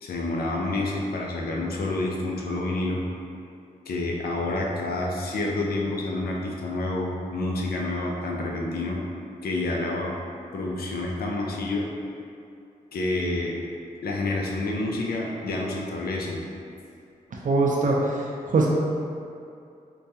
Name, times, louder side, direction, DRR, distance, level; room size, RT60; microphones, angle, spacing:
voice 1, 0.0-3.0 3.9-9.0 9.4-10.2 10.5-11.9 12.9-13.6 14.0-16.4, left 2 dB, 75° left, -1 dB, 0.5 m, -28 dB
voice 2, 17.4-18.7, right 3 dB, 55° right, -3 dB, 0.5 m, -22 dB
4.4 x 2.3 x 2.7 m, 2.5 s
cardioid pair, 50°, 16 cm